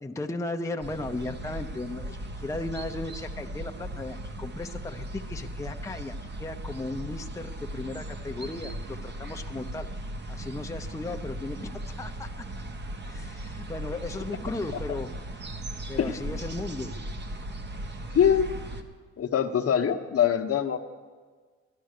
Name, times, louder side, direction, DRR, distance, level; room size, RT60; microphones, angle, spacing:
voice 1, 0.0-9.9 10.3-12.3 13.0-15.1 15.9-16.9, left 2 dB, 10° left, 4 dB, 0.8 m, -36 dB
sound 1, 0.8-18.8, right 1 dB, 35° right, 1.3 m, -38 dB
voice 2, 16.0-16.3 18.1-18.5 19.2-20.8, left 8 dB, 50° left, 7 dB, 1.0 m, -23 dB
13.5 x 11.5 x 6.6 m, 1.5 s
cardioid pair, 90°, 30 cm